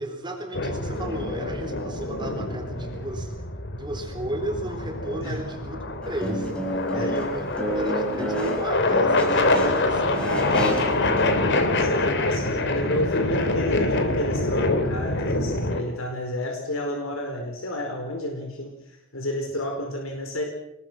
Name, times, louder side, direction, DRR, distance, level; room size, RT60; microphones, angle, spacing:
voice 1, 0.0-3.4 3.7-11.3, right 1 dB, 25° right, 4 dB, 4.0 m, -34 dB
sound 1, 0.5-15.8, left 2 dB, 60° left, 3.2 m, -25 dB
Guitar, 6.0-11.3, right 1 dB, 5° left, 5.7 m, -30 dB
voice 2, 11.4-20.4, left 1 dB, 85° left, 2 dB, 4.7 m, -31 dB
29.0 x 21.5 x 6.2 m, 0.83 s
head